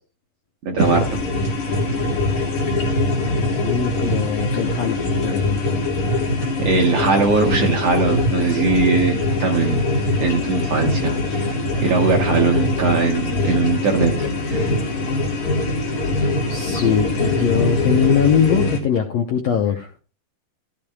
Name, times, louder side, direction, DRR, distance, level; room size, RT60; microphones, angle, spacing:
voice 1, 0.6-1.2 6.6-9.8 10.2-11.1 11.4-14.7, right 4 dB, 65° right, 1 dB, 1.7 m, -20 dB
sound 1, 0.8-18.8, left 2 dB, 60° left, 3.4 m, -22 dB
voice 2, 3.6-5.8 16.5-19.9, left 8 dB, 75° left, 5 dB, 1.5 m, -21 dB
14.5 x 12.0 x 2.3 m, 0.35 s
omnidirectional pair, 4.2 m